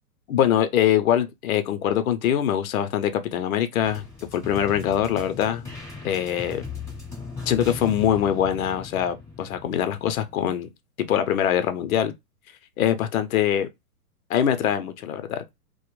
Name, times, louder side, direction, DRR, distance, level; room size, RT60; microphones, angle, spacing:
voice 1, 0.3-4.0 4.3-5.7 6.0-6.6 7.5-10.7 11.1-12.1 12.8-13.7 14.3-15.4, left 10 dB, 60° left, 0.6 m, -23 dB
sound 1, 3.8-10.3, left 4 dB, 5° left, 0.6 m, -38 dB
2.4 x 2.1 x 3.0 m
hypercardioid pair, 150°, 47 cm